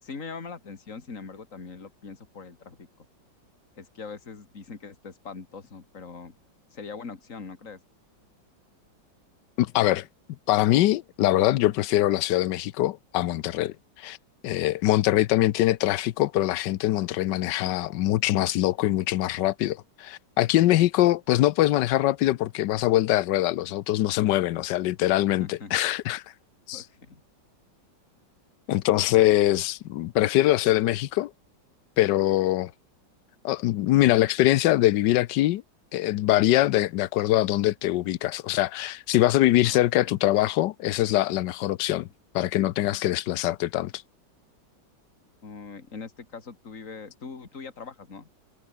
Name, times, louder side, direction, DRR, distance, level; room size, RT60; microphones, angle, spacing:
voice 1, 0.0-2.9 3.8-6.3 6.7-7.8 25.4-25.7 26.7-27.2 29.1-29.3 39.6-40.1 45.4-48.3, left 5 dB, 45° left, 3.0 m, -41 dB
voice 2, 9.6-10.1 10.5-14.2 14.4-26.2 26.7-26.8 28.7-31.3 32.0-32.7 33.4-35.6 35.9-42.1 42.3-44.0, left 15 dB, 80° left, 1.3 m, -23 dB
omnidirectional pair, 1.9 m